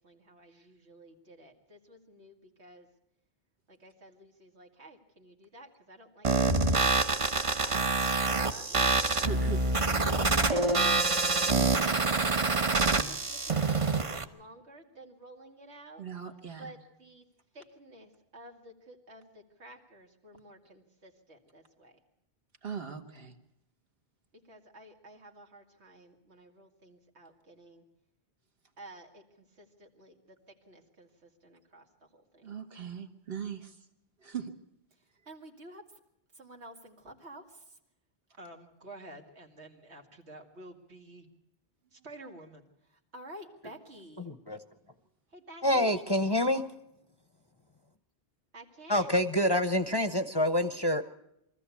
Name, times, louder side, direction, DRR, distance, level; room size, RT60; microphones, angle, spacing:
voice 1, 0.0-2.9 3.7-9.4 9.8-11.8 12.7-16.0 16.6-17.2 17.5-22.0 24.5-27.8 28.8-30.4 30.7-31.9 32.1-32.5 35.3-35.8 36.3-37.7 38.4-41.3 41.9-42.7 43.1-44.3 45.3-46.0 48.5-49.2, right 1 dB, 80° right, 3 dB, 2.6 m, -51 dB
sound 1, 6.2-14.2, right 3 dB, 30° right, 0.9 m, -26 dB
voice 2, 9.1-10.6 11.5-11.9 12.8-13.1 16.0-16.7 22.6-23.3 32.4-33.8 34.2-34.5, right 7 dB, 60° right, 6 dB, 1.9 m, -40 dB
voice 3, 44.2-44.6 45.6-46.6 48.9-51.0, left 1 dB, 25° left, 9 dB, 0.8 m, -27 dB
23.5 x 14.5 x 8.4 m, 0.82 s
omnidirectional pair, 1.1 m